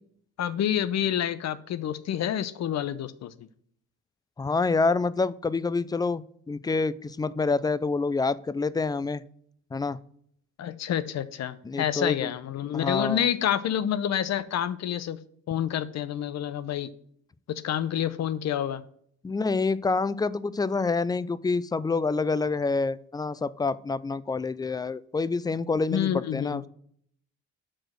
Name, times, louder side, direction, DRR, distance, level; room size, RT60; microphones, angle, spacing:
voice 1, 0.4-3.5 10.6-15.2 15.5-16.9 17.5-18.8 25.9-26.7, left 10 dB, 60° left, 15 dB, 0.7 m, -28 dB
voice 2, 4.4-9.2 9.7-10.0 11.6-12.3 12.7-13.3 19.2-26.7, left 4 dB, 15° left, 18 dB, 0.3 m, -27 dB
6.3 x 5.0 x 6.1 m, 0.65 s
cardioid pair, 90°, 30 cm